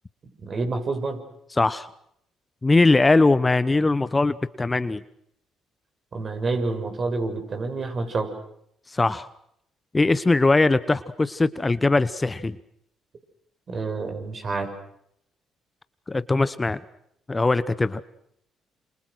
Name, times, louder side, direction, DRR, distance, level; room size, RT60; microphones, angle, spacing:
voice 1, 0.4-1.2 6.1-8.3 13.7-14.7, right 3 dB, 45° right, 6 dB, 6.6 m, -28 dB
voice 2, 1.6-1.9 2.6-5.0 8.9-9.3 9.9-12.6 16.1-16.8 17.3-18.0, left 3 dB, 25° left, 14 dB, 1.1 m, -20 dB
28.0 x 27.5 x 6.4 m, 0.74 s
supercardioid pair, 60°, 0 cm